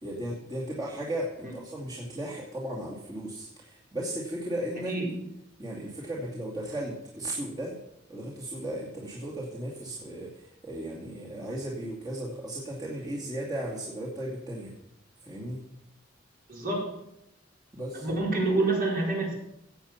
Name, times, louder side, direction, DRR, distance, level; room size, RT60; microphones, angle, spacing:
voice 1, 0.0-4.9 5.6-7.8 8.1-14.7 15.2-15.6 17.7-18.1, right 1 dB, 20° right, -5 dB, 2.4 m, -35 dB
voice 2, 4.9-5.2 16.5-17.1 17.9-19.4, right 2 dB, 50° right, -2 dB, 4.4 m, -28 dB
17.0 x 8.4 x 5.8 m, 0.81 s
head